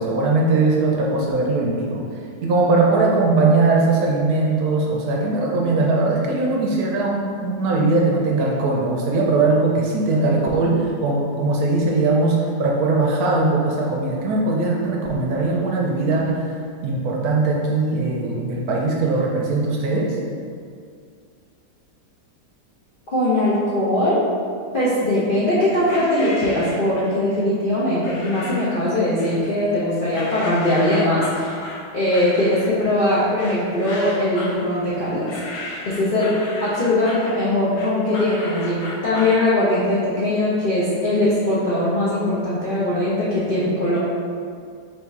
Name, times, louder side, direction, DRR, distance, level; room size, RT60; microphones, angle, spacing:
voice 1, 0.0-2.0 2.4-16.5 16.8-20.2, right 3 dB, 70° right, -2 dB, 0.9 m, -20 dB
voice 2, 23.1-24.2 24.7-31.6 31.9-35.4 35.8-36.3 36.6-44.0, left 1 dB, 60° left, -9 dB, 0.5 m, -20 dB
sound 1, 25.9-27.2 28.0-28.8 29.2-29.8 30.1-39.4, left 2 dB, 80° left, 1.2 m, -35 dB
3.5 x 2.6 x 4.5 m, 2.2 s
omnidirectional pair, 1.8 m